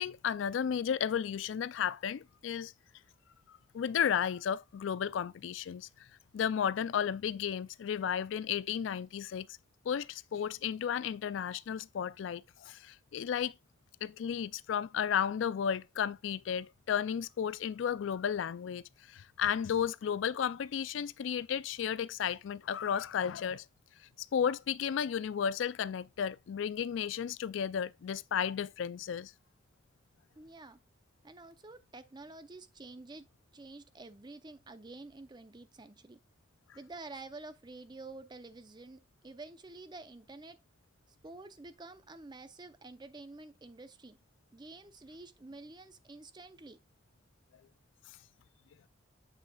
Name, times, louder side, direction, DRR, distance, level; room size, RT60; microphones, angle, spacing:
voice 1, 0.0-2.7 3.5-5.9 6.3-9.5 9.9-13.5 14.0-23.6 24.2-29.3, left 8 dB, 75° left, 0.3 m, -33 dB
voice 2, 30.3-30.8 31.2-33.3 33.5-36.2 36.7-40.6 41.2-44.2 44.5-46.8, right 3 dB, 25° right, 0.6 m, -49 dB
7.3 x 6.5 x 2.3 m
head